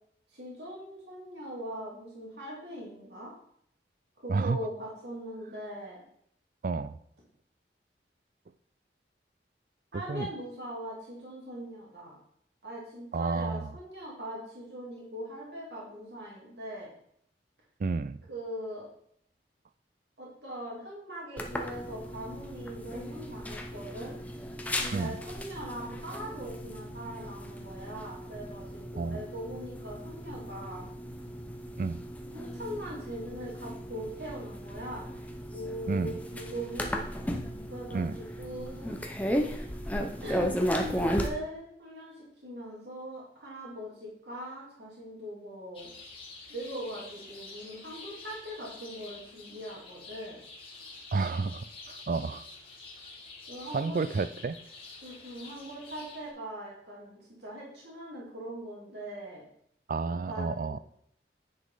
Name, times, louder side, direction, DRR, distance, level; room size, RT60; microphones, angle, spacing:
voice 1, 0.3-3.3 4.2-6.0 9.9-12.2 12.6-16.9 18.3-18.9 20.2-24.2 24.8-30.8 32.3-35.0 35.5-37.0 37.7-38.9 40.2-45.9 46.5-50.4 53.5-54.0 55.0-59.4 60.3-60.8, equal, 75° right, -5 dB, 2.8 m, -41 dB
voice 2, 6.6-6.9 9.9-10.3 13.1-13.7 17.8-18.2 24.9-25.2 29.0-29.2 31.8-32.0 35.9-36.1 37.9-38.1 51.1-52.5 53.7-54.6 59.9-60.8, right 4 dB, 50° right, 13 dB, 0.3 m, -30 dB
sound 1, 21.4-41.3, equal, 10° left, 0.7 m, -36 dB
sound 2, 45.7-56.3, left 3 dB, 30° left, 1.8 m, -48 dB
9.6 x 5.3 x 4.0 m, 0.68 s
head